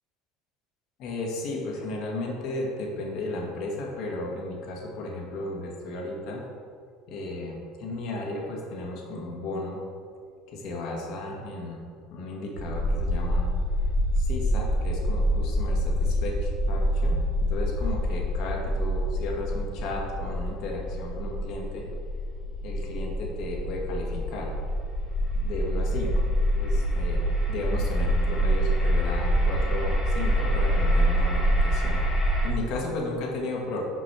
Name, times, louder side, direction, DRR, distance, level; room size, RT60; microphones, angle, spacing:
voice 1, 1.0-6.4 7.1-9.8 10.5-11.8 12.1-13.5 14.2-17.2 17.5-21.8 22.6-24.5 25.4-26.3 26.5-33.8, left 2 dB, 55° left, -1 dB, 1.6 m, -34 dB
sound 1, 12.6-32.5, equal, 20° left, 1.6 m, -26 dB
6.1 x 5.1 x 6.1 m, 2.2 s
cardioid pair, 145°, 0 cm